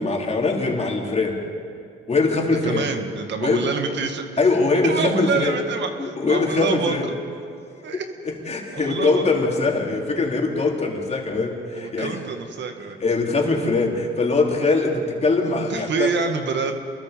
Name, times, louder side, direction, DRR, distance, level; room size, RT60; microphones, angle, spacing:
voice 1, 0.0-1.4 2.1-2.9 3.4-3.7 4.4-5.5 6.0-7.1 7.9-12.2 13.0-16.1, left 3 dB, 35° left, 0 dB, 4.0 m, -22 dB
voice 2, 2.6-4.2 4.8-6.9 7.8-8.1 8.7-9.2 11.7-13.0 15.7-16.8, right 5 dB, 65° right, 5 dB, 2.2 m, -26 dB
28.5 x 22.0 x 5.4 m, 2.5 s
cardioid pair, 90°, 20 cm